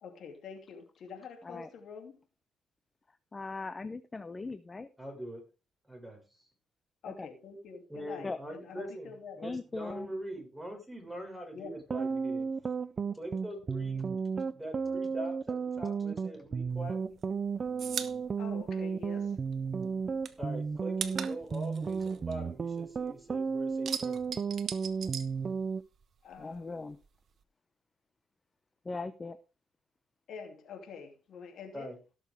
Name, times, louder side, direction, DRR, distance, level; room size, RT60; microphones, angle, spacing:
voice 1, 0.0-2.3 7.0-9.5 11.5-11.8 18.4-19.4 26.2-26.8 30.3-31.9, left 6 dB, 70° left, 2.8 m, -46 dB
voice 2, 3.3-4.9 7.2-7.3 8.2-8.4 9.4-10.1 26.4-27.0 28.9-29.4, left 3 dB, 25° left, 0.8 m, -39 dB
voice 3, 5.0-5.4 5.8-6.5 7.9-12.5 13.2-14.1 14.5-17.2 20.4-24.3 31.7-32.0, right 1 dB, 5° right, 5.3 m, -43 dB
sound 1, 11.8-25.8, right 5 dB, 40° right, 0.6 m, -33 dB
sound 2, 16.7-19.5 19.8-23.1 23.4-26.0 26.3-27.4, right 7 dB, 55° right, 1.1 m, -40 dB
17.5 x 6.7 x 3.5 m
cardioid pair, 90°, 0 cm